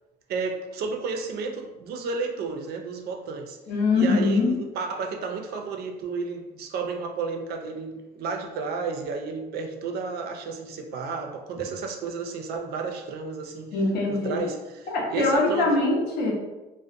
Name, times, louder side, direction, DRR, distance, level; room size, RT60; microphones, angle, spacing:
voice 1, 0.3-3.6 3.9-13.8 14.1-15.8, right 4 dB, 70° right, 4 dB, 0.4 m, -32 dB
voice 2, 3.7-4.6 13.7-14.4 14.9-16.3, left 3 dB, 75° left, 0 dB, 0.6 m, -23 dB
2.5 x 2.0 x 2.5 m, 1.1 s
cardioid pair, 110°, 17 cm